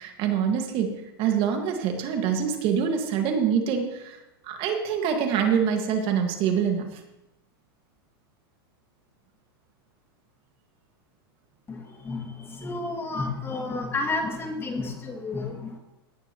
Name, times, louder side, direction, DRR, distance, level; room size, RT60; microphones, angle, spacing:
voice 1, 0.0-4.2 4.4-7.0, right 7 dB, 45° right, 4 dB, 1.8 m, -25 dB
voice 2, 11.7-15.8, left 3 dB, 20° left, 2 dB, 2.3 m, -31 dB
17.5 x 11.0 x 3.0 m, 0.93 s
hypercardioid pair, 120°, 13 cm